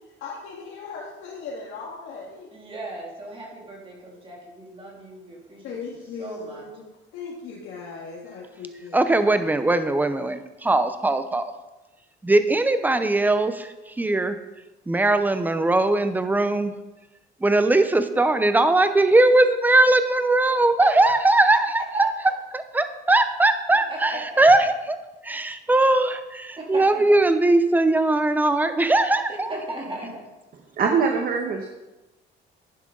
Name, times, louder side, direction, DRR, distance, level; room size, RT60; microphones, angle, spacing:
voice 1, 0.2-2.5 5.6-6.9 7.1-9.5, left 4 dB, 85° left, -4 dB, 2.0 m, -38 dB
voice 2, 2.5-5.7 6.2-6.6 20.8-21.2 21.7-22.1 23.9-24.7 26.6-27.2 29.3-30.3, right 1 dB, 25° right, -2 dB, 3.0 m, -36 dB
voice 3, 8.9-11.5 12.2-14.4 14.9-16.7 17.4-22.1 22.5-25.0 25.2-29.5, right 2 dB, 10° right, 10 dB, 0.8 m, -20 dB
voice 4, 30.8-31.7, right 5 dB, 45° right, 3 dB, 1.2 m, -22 dB
11.0 x 10.0 x 3.9 m, 1.1 s
cardioid pair, 125°, 21 cm